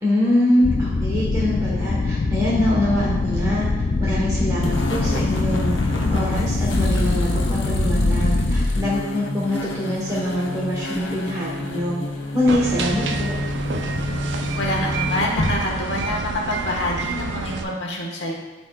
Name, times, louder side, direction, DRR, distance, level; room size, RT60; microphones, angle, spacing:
voice 1, 0.0-3.7 4.0-12.0 12.3-13.4, left 1 dB, 20° right, -7 dB, 1.1 m, -24 dB
sound 1, 0.6-8.7, left 3 dB, 40° left, 0.4 m, -23 dB
sound 2, 4.6-15.5, left 1 dB, 80° left, 1.0 m, -27 dB
sound 3, 12.5-17.6, right 3 dB, 70° right, 0.6 m, -28 dB
voice 2, 14.5-18.3, left 1 dB, 65° left, -1 dB, 1.4 m, -26 dB
12.0 x 4.3 x 2.3 m, 1.2 s
head